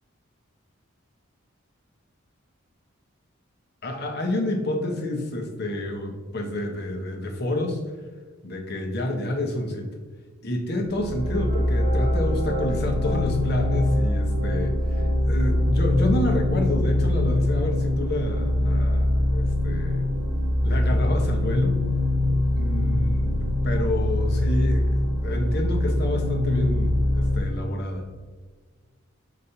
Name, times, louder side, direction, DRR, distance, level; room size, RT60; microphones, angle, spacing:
voice 1, 3.8-7.8 8.4-9.9 10.4-20.1 20.6-21.8 22.6-28.0, left 1 dB, 50° left, 2 dB, 1.1 m, -29 dB
sound 1, 10.9-27.3, left 1 dB, 20° right, 1.2 m, -23 dB
6.8 x 5.2 x 2.8 m, 1.5 s
head